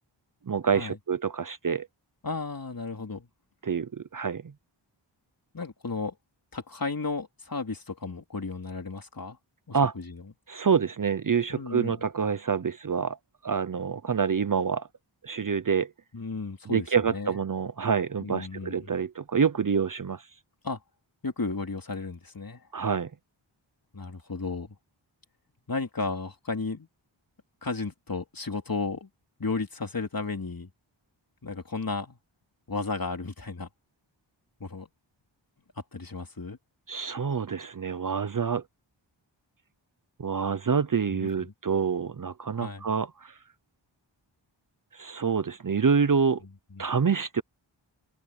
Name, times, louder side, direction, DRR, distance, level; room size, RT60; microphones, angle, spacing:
voice 1, 0.5-1.9 3.6-4.4 9.7-9.9 10.5-13.2 13.4-14.9 15.2-15.9 16.7-20.2 22.7-23.1 36.9-38.6 40.2-43.3 44.9-46.4 46.8-47.4, right 6 dB, 40° right, 0.7 m, -27 dB
voice 2, 2.2-3.3 5.5-6.1 6.5-9.4 9.7-10.2 11.5-12.0 16.1-17.4 18.2-18.9 20.6-20.8 21.2-22.7 23.9-24.7 25.7-26.9 27.6-29.1 29.4-30.7 31.4-32.2 32.7-33.7 34.6-34.9 35.9-36.6 41.1-41.5 42.5-42.9 46.7-46.8, left 3 dB, 45° left, 3.5 m, -34 dB
open air
wide cardioid pair, 75°, 47 cm